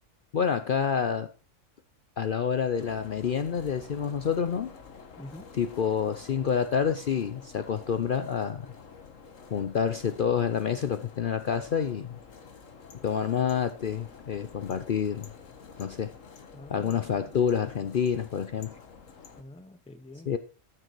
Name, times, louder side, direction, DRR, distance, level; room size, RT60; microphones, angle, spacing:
voice 1, 0.3-1.3 2.2-4.7 5.5-8.7 9.5-12.2 13.0-15.3 15.8-16.1 16.7-18.7 20.3-20.4, left 7 dB, 55° left, 0.7 m, -28 dB
sound 1, 2.8-19.4, left 5 dB, 85° left, 1.7 m, -49 dB
voice 2, 5.2-5.5 16.5-17.2 19.4-20.4, left 1 dB, 5° left, 0.6 m, -46 dB
13.5 x 6.4 x 4.6 m
omnidirectional pair, 1.3 m